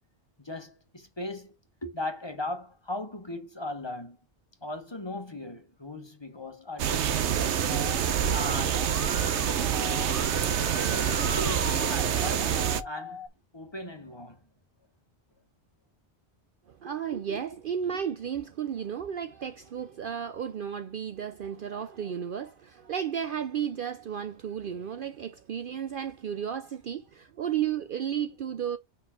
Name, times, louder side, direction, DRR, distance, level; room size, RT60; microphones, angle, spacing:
voice 1, 0.4-1.5 1.8-4.2 4.6-7.7 8.0-8.9 10.5-13.2 13.5-14.4, left 1 dB, 25° left, 1.3 m, -38 dB
sound 1, 6.8-12.8, right 9 dB, 75° right, 1.0 m, -26 dB
Musical instrument, 7.7-13.3, left 6 dB, 55° left, 1.1 m, -40 dB
voice 2, 16.7-28.8, right 8 dB, 55° right, 0.7 m, -33 dB
5.4 x 4.6 x 5.7 m
omnidirectional pair, 1.2 m